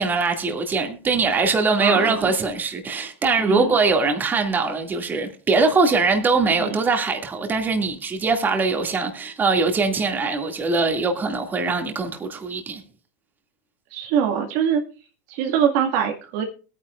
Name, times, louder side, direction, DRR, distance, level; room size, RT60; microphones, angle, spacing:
voice 1, 0.0-12.8, right 4 dB, 25° right, 2.3 m, -22 dB
voice 2, 1.8-2.3 3.5-3.7 6.6-6.8 13.9-14.8 15.3-16.4, right 8 dB, 65° right, 1.9 m, -23 dB
20.5 x 9.6 x 2.5 m
supercardioid pair, 105°, 8 cm